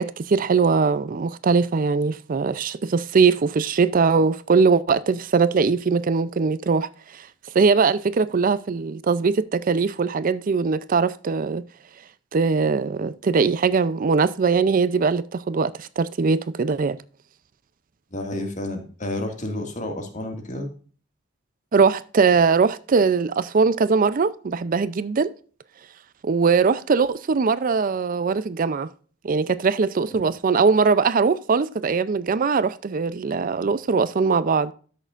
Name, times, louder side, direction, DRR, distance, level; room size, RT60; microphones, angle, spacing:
voice 1, 0.0-7.3 7.5-11.6 12.3-17.0 21.7-25.3 26.2-28.9 29.2-34.7, right 5 dB, 45° right, 0.4 m, -21 dB
voice 2, 18.1-20.7 30.1-30.2, left 1 dB, 40° left, 2.0 m, -30 dB
13.0 x 6.5 x 2.5 m
head